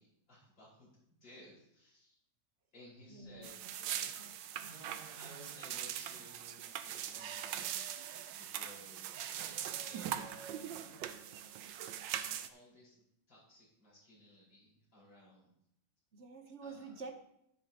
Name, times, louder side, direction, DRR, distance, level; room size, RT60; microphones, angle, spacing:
voice 1, 0.0-2.2 2.7-11.3 12.3-15.6 16.6-17.0, equal, 85° left, -7 dB, 5.7 m, -59 dB
voice 2, 3.1-3.7 4.2-4.4 4.6-4.7 16.1-17.2, right 4 dB, 45° right, 6 dB, 1.1 m, -49 dB
sound 1, 3.4-12.5, right 10 dB, 85° right, 1.3 m, -41 dB
11.5 x 9.9 x 2.9 m, 0.76 s
omnidirectional pair, 2.0 m